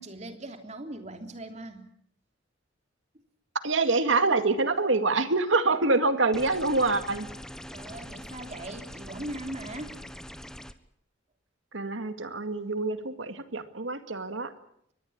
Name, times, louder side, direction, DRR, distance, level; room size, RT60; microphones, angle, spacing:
voice 1, 0.0-1.9 7.7-10.0, right 1 dB, 35° right, 6 dB, 3.1 m, -40 dB
voice 2, 3.6-7.3 11.7-14.5, right 3 dB, 80° right, 9 dB, 2.2 m, -26 dB
sound 1, 6.3-10.7, equal, 5° left, 1.0 m, -43 dB
24.0 x 19.5 x 8.7 m, 0.71 s
head